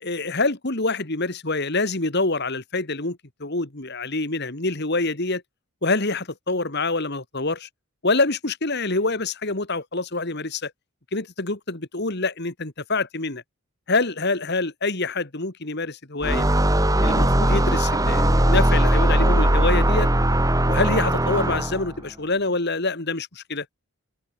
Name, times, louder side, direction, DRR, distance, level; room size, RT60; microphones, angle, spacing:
voice 1, 0.0-5.4 5.8-7.7 8.0-10.7 11.1-13.4 13.9-16.4 17.0-20.1 20.7-23.7, left 3 dB, 50° left, 2.1 m, -26 dB
sound 1, 16.2-21.9, right 1 dB, 15° right, 2.4 m, -19 dB
open air
head